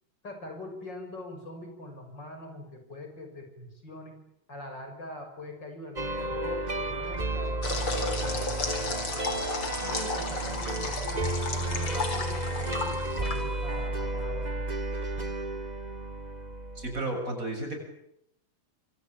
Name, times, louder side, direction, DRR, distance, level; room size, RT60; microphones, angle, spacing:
voice 1, 0.2-4.2 4.5-8.8 9.8-14.7, left 1 dB, 55° left, 5 dB, 7.1 m, -43 dB
sound 1, 6.0-17.0, right 2 dB, 20° right, 1.9 m, -32 dB
sound 2, 7.6-13.9, left 3 dB, 85° left, 4.8 m, -34 dB
voice 2, 16.8-17.8, right 2 dB, 40° right, 4 dB, 7.8 m, -33 dB
27.0 x 25.5 x 8.8 m, 0.77 s
omnidirectional pair, 2.3 m